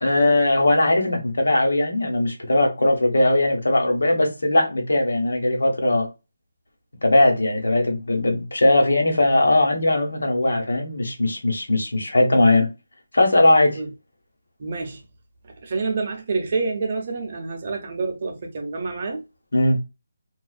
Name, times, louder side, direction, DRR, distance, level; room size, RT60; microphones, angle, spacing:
voice 1, 0.0-6.1 7.0-12.7 13.1-13.8 19.5-19.8, left 2 dB, 85° left, 1.0 m, -19 dB
voice 2, 14.6-15.0 15.6-19.2, right 4 dB, 40° right, 0.6 m, -27 dB
2.3 x 2.2 x 2.4 m
figure-of-eight pair, 165°, 0 cm